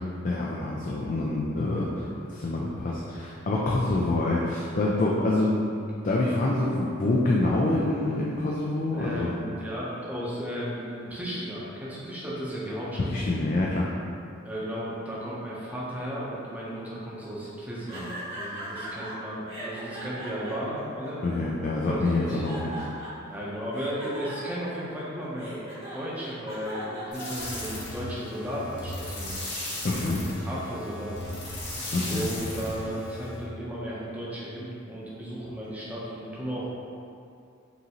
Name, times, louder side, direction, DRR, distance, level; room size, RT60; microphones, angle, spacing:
voice 1, 0.2-5.7 6.0-9.3 13.1-13.9 21.2-22.8 29.8-30.2 31.9-32.3, left 2 dB, 40° left, -4 dB, 0.4 m, -26 dB
voice 2, 8.9-13.1 14.4-21.2 21.7-22.8 23.3-25.6 25.9-29.4 30.4-31.3 32.0-36.6, equal, 10° right, -7 dB, 0.7 m, -35 dB
sound 1, 17.9-19.1 19.5-21.6 22.1-23.3 23.7-28.0, right 1 dB, 30° right, 1.1 m, -39 dB
sound 2, 27.1-33.4, left 1 dB, 60° left, 1.3 m, -36 dB
5.5 x 2.6 x 3.0 m, 2.5 s
head